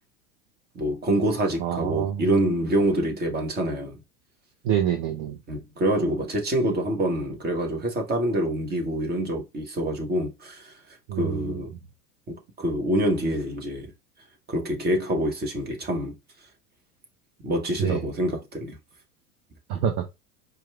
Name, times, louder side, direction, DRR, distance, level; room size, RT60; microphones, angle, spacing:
voice 1, 0.7-4.0 5.5-10.7 11.1-11.7 12.6-13.9 14.5-16.1 17.4-18.8, right 1 dB, 20° right, 1.2 m, -26 dB
voice 2, 1.6-2.4 4.6-5.4 11.1-11.6 17.8-18.1 19.7-20.0, right 9 dB, 40° right, 0.7 m, -27 dB
4.7 x 2.3 x 3.4 m
figure-of-eight pair, 85°, 46 cm